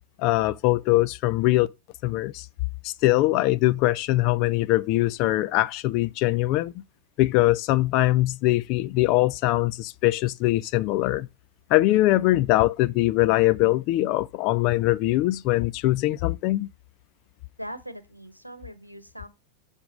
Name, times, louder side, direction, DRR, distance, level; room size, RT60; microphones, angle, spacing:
voice 1, 0.2-1.7 2.0-2.5 2.8-6.7 7.2-11.3 11.7-16.7, left 17 dB, 40° left, 0.3 m, -22 dB
voice 2, 17.6-19.3, equal, 90° right, 1.0 m, -40 dB
6.7 x 3.5 x 5.2 m
figure-of-eight pair, 90°, 0 cm